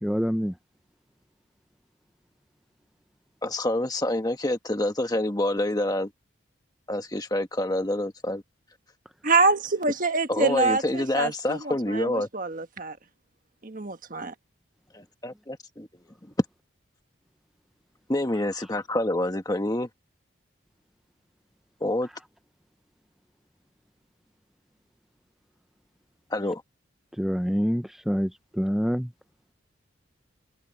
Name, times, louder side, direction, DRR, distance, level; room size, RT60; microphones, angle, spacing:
voice 1, 0.0-0.5 27.2-28.3 28.6-29.1, equal, ahead, 0.7 m, -26 dB
voice 2, 3.4-6.1 6.9-8.4 10.3-12.3 14.9-15.9 18.1-19.9 21.8-22.1 26.3-26.6, left 1 dB, 20° left, 1.4 m, -27 dB
voice 3, 9.2-13.0 13.6-14.3, right 3 dB, 40° right, 1.5 m, -25 dB
head